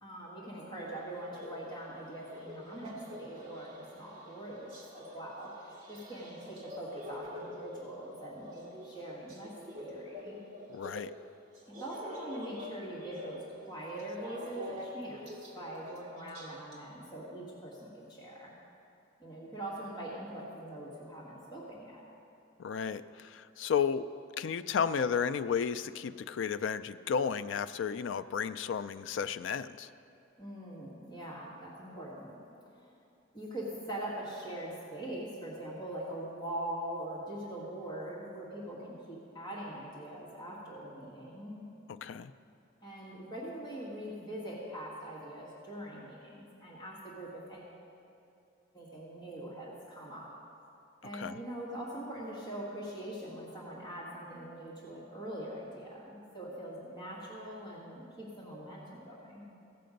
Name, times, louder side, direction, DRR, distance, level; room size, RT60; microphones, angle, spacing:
voice 1, 0.0-10.4 11.7-15.3 15.5-18.5 19.2-22.0 30.4-32.4 32.8-32.9 33.3-41.6 42.8-47.7 48.7-50.3 51.0-59.4, right 1 dB, 20° left, -6 dB, 1.9 m, -42 dB
sound 1, 0.8-11.1 11.5-16.8, left 1 dB, 35° right, 1.7 m, -47 dB
voice 2, 10.7-11.1 22.6-24.1 24.4-29.9 42.0-42.3 51.1-51.4, left 7 dB, 65° left, 13 dB, 0.3 m, -33 dB
16.5 x 6.7 x 5.2 m, 2.7 s
head